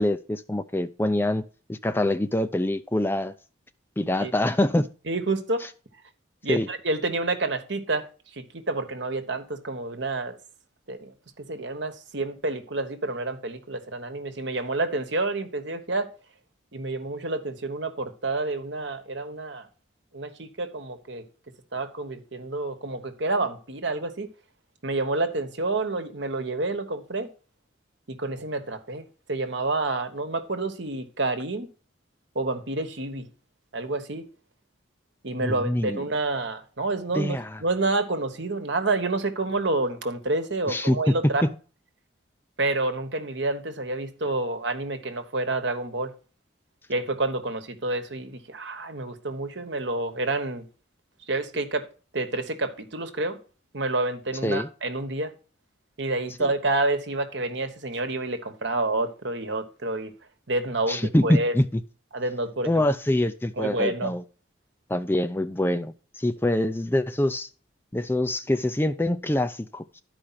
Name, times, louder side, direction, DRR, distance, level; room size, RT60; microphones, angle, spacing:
voice 1, 0.0-3.3 4.0-4.9 6.5-6.7 35.4-36.0 37.1-37.6 40.7-41.2 41.4-41.5 54.4-54.7 56.4-56.5 60.9-61.8 62.7-64.2 64.9-67.5 67.9-70.0, left 1 dB, 10° left, 0.4 m, -25 dB
voice 2, 5.1-5.6 6.4-8.1 8.4-10.4 10.9-16.1 16.7-19.7 20.1-21.2 21.7-24.3 24.8-27.3 28.1-31.7 32.3-33.3 33.7-34.2 35.2-41.4 42.6-46.1 46.9-50.6 51.3-51.8 52.1-53.4 53.7-55.3 56.0-60.1 60.5-61.5 62.1-62.8 63.6-64.1, right 2 dB, 70° right, 1.3 m, -28 dB
12.0 x 5.0 x 5.7 m
head